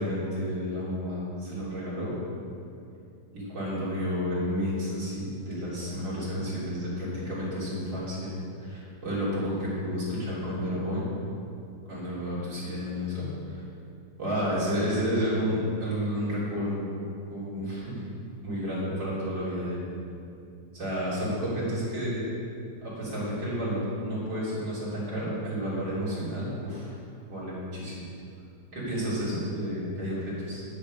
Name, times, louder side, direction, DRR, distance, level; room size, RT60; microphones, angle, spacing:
voice 1, 0.0-2.1 3.3-8.3 8.6-11.0 11.9-13.6 14.2-17.0 17.3-18.0 18.4-19.8 20.7-22.2 22.8-26.9 27.3-28.0 28.7-30.7, equal, 70° right, -9 dB, 4.3 m, -31 dB
11.0 x 9.7 x 5.3 m, 2.6 s
omnidirectional pair, 2.1 m